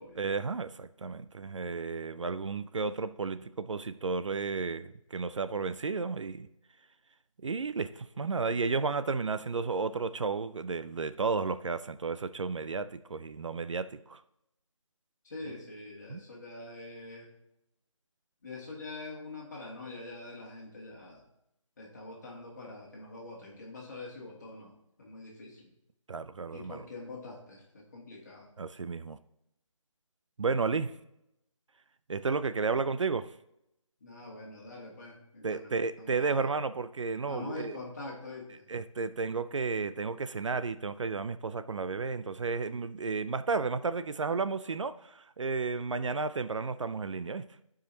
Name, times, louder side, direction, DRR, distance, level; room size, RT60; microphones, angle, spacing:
voice 1, 0.2-6.5 7.4-14.2 16.1-16.2 26.1-26.8 28.6-29.2 30.4-30.9 32.1-33.3 35.4-37.8 38.7-47.4, right 4 dB, 65° right, 12 dB, 0.4 m, -32 dB
voice 2, 15.2-17.3 18.4-21.2 21.8-24.7 25.0-25.7 26.5-28.5 34.0-36.5 37.3-38.7 42.6-42.7, left 2 dB, 35° left, -2 dB, 1.9 m, -44 dB
13.0 x 4.9 x 2.8 m, 0.83 s
figure-of-eight pair, 170°, 17 cm